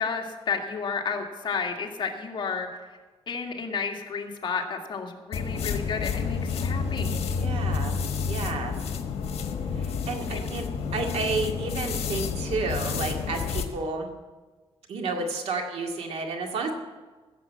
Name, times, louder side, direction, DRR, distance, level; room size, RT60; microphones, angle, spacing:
voice 1, 0.0-2.8 3.3-7.1 10.3-10.4, left 5 dB, 50° left, 1 dB, 2.0 m, -31 dB
sound 1, 5.3-13.7, left 5 dB, 85° left, 1.3 m, -30 dB
voice 2, 7.3-7.9 8.3-8.7 9.8-10.7 10.9-14.1 14.9-16.7, right 3 dB, 90° right, 2 dB, 2.1 m, -31 dB
15.5 x 7.5 x 8.5 m, 1.3 s
wide cardioid pair, 130°, 10 cm